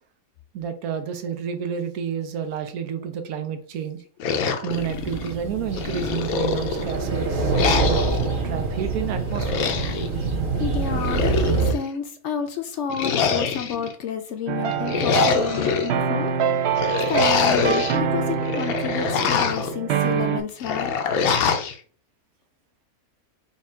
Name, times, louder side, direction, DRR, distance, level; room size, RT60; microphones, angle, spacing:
voice 1, 0.5-4.0 4.6-7.5 7.8-9.7, right 8 dB, 90° right, 7 dB, 1.2 m, -30 dB
sound 1, 4.2-5.3 5.8-7.0 7.5-8.3 9.3-10.1 10.9-11.9 12.9-13.9 14.7-15.9 16.8-18.0 18.4-19.7 20.6-21.7, left 6 dB, 80° left, 1.1 m, -24 dB
sound 2, 4.7-11.7, right 3 dB, 40° right, 1.0 m, -25 dB
voice 2, 10.6-16.3 16.9-20.9, left 7 dB, 65° left, 7 dB, 0.8 m, -30 dB
sound 3, 14.5-20.4, right 7 dB, 65° right, 0.7 m, -25 dB
4.2 x 2.4 x 4.3 m, 0.41 s
omnidirectional pair, 1.5 m